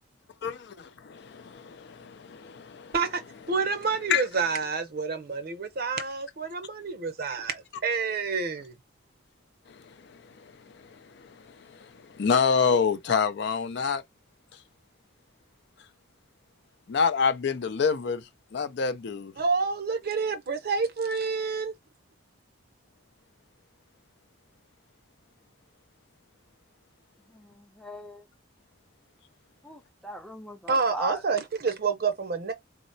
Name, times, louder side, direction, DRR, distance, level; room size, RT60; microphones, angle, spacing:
voice 1, 0.4-3.0 4.1-4.2 9.7-14.0 16.9-19.3, left 6 dB, 55° left, 0.4 m, -28 dB
voice 2, 3.5-8.7 19.4-21.7 30.7-32.5, right 4 dB, 50° right, 0.6 m, -28 dB
voice 3, 27.3-28.2 29.6-31.2, right 1 dB, 5° left, 0.5 m, -39 dB
3.9 x 2.0 x 2.6 m
head